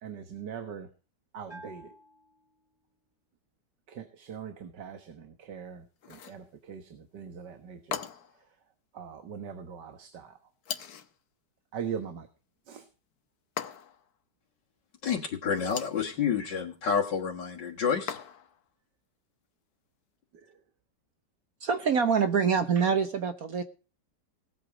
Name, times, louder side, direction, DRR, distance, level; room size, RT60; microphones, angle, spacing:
voice 1, 0.0-0.9 1.3-1.9 3.9-8.0 8.9-10.4 11.7-12.3 12.7-12.8 20.3-20.5, right 7 dB, 80° right, 2.0 m, -41 dB
Bell, 1.5-3.1, right 1 dB, 15° right, 3.2 m, -52 dB
sound 1, 6.0-6.5 7.9-8.4 10.6-11.2 13.6-14.1 15.5-16.0 18.1-18.6, left 8 dB, 65° left, 1.6 m, -38 dB
voice 2, 15.0-18.2, left 7 dB, 90° left, 2.5 m, -29 dB
voice 3, 21.6-23.6, right 6 dB, 60° right, 1.4 m, -25 dB
18.0 x 8.4 x 5.0 m
omnidirectional pair, 1.8 m